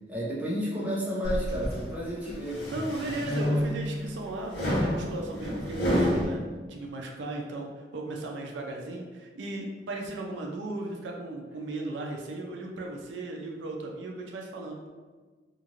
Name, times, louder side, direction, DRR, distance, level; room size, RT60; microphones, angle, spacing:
voice 1, 0.1-2.7, equal, 10° right, -7 dB, 0.7 m, -32 dB
sound 1, 1.2-1.8 2.3-3.9 4.5-6.2, equal, 65° left, 1.2 m, -28 dB
voice 2, 2.7-6.4 6.7-14.9, right 2 dB, 80° right, 1 dB, 0.4 m, -36 dB
2.9 x 2.5 x 2.9 m, 1.4 s
head